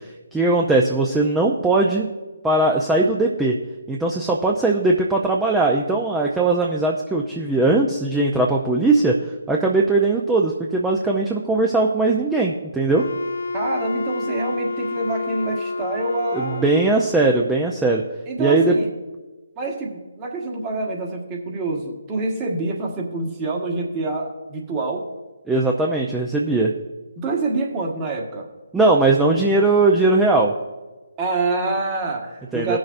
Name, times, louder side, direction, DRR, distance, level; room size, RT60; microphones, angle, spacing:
voice 1, 0.3-2.1 2.4-3.6 3.9-9.1 9.5-13.0 16.3-18.0 18.4-18.8 25.5-26.7 28.7-30.5 32.5-32.8, right 2 dB, 5° right, -1 dB, 0.6 m, -19 dB
Wind instrument woodwind instrument, 12.9-17.2, left 2 dB, 70° left, 1.0 m, -29 dB
voice 2, 13.5-16.6 18.3-18.9 19.5-25.1 27.2-28.5 31.2-32.8, right 2 dB, 20° right, 0 dB, 1.4 m, -26 dB
18.5 x 6.4 x 2.6 m, 1.2 s
figure-of-eight pair, 145°, 0 cm